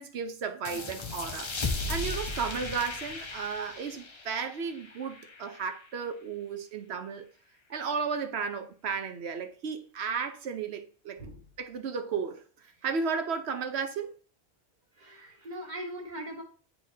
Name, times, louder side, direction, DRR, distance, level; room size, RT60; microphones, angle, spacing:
voice 1, 0.0-1.5 1.9-7.3 7.7-11.2 11.6-12.4 12.8-14.1, right 5 dB, 75° right, 1.0 m, -34 dB
sound 1, 0.6-5.9, left 3 dB, 30° left, 0.6 m, -36 dB
voice 2, 11.2-11.5 14.9-16.4, right 1 dB, 45° right, 1.6 m, -40 dB
9.7 x 4.2 x 2.8 m
omnidirectional pair, 1.1 m